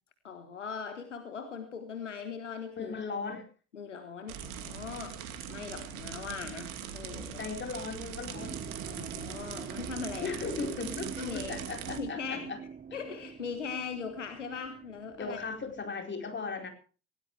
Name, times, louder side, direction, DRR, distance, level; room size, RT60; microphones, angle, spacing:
voice 1, 0.2-2.9 3.7-7.5 8.8-10.4 11.2-11.5 12.0-12.5 12.9-15.4, left 6 dB, 85° left, 8 dB, 1.7 m, -40 dB
voice 2, 2.8-3.5 7.4-8.6 10.2-12.6 15.2-16.7, left 4 dB, 30° left, 4 dB, 4.6 m, -37 dB
sound 1, 4.3-12.0, right 9 dB, 65° right, 2.6 m, -41 dB
sound 2, 8.3-15.9, right 6 dB, 25° right, 0.9 m, -44 dB
19.0 x 18.0 x 3.3 m, 0.38 s
figure-of-eight pair, 50°, 36 cm